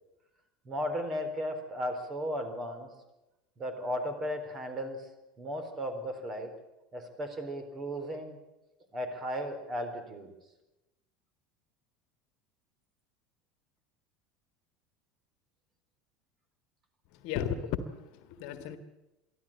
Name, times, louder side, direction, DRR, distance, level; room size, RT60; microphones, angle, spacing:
voice 1, 0.6-2.9 3.6-5.1 5.4-6.5 6.9-8.4 8.9-10.3, equal, 30° right, 8 dB, 4.0 m, -35 dB
voice 2, 17.1-18.8, left 8 dB, 55° left, 10 dB, 1.6 m, -35 dB
23.5 x 14.5 x 8.7 m, 0.99 s
figure-of-eight pair, 70°, 0 cm